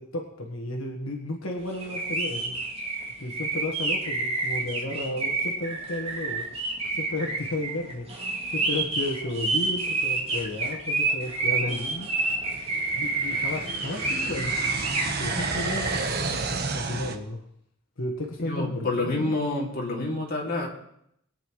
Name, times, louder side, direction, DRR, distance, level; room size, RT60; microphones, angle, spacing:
voice 1, 0.0-2.6 3.2-6.5 6.9-8.1 8.5-12.1 12.9-14.5 15.2-16.0 16.3-17.4 18.0-19.3, left 1 dB, 75° left, 0 dB, 1.4 m, -33 dB
sound 1, 1.7-16.0, right 3 dB, 30° right, 2.6 m, -29 dB
sound 2, 8.3-8.4 9.0-9.1 9.8-17.2, right 4 dB, 50° right, 1.1 m, -33 dB
voice 2, 18.4-20.7, left 2 dB, 45° left, -2 dB, 2.5 m, -28 dB
21.5 x 9.1 x 3.1 m, 0.75 s
head